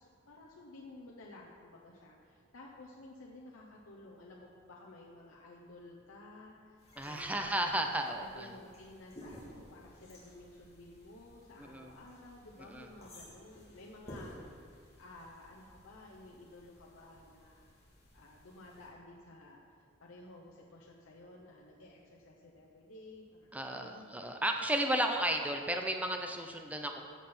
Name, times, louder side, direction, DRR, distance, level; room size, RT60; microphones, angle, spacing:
voice 1, 0.0-7.7 8.2-17.7 18.1-24.1, left 2 dB, 80° left, -3 dB, 0.9 m, -54 dB
sound 1, 6.8-18.9, equal, 30° left, 2.8 m, -55 dB
voice 2, 7.0-8.5 11.6-11.9 12.7-12.9 23.5-27.0, right 1 dB, 5° right, 3 dB, 0.6 m, -33 dB
14.5 x 5.7 x 4.4 m, 2.1 s
head